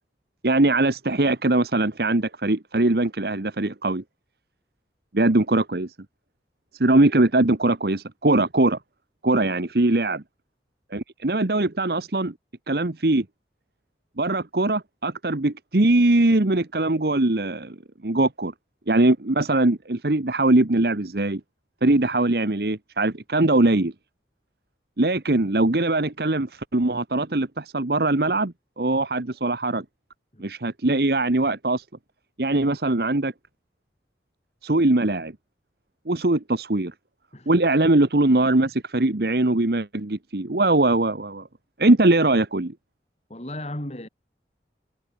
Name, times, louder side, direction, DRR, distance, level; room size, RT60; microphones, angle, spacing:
voice 1, 0.4-4.0 5.1-5.9 6.8-8.8 9.2-10.2 10.9-12.3 12.7-13.2 14.2-17.8 18.0-18.5 18.9-21.4 21.8-23.9 25.0-29.8 30.4-31.8 32.4-33.3 34.6-35.3 36.1-36.9 37.5-41.4 41.8-42.7, right 2 dB, 60° right, 1.2 m, -21 dB
voice 2, 43.3-44.1, left 1 dB, 35° left, 3.5 m, -35 dB
head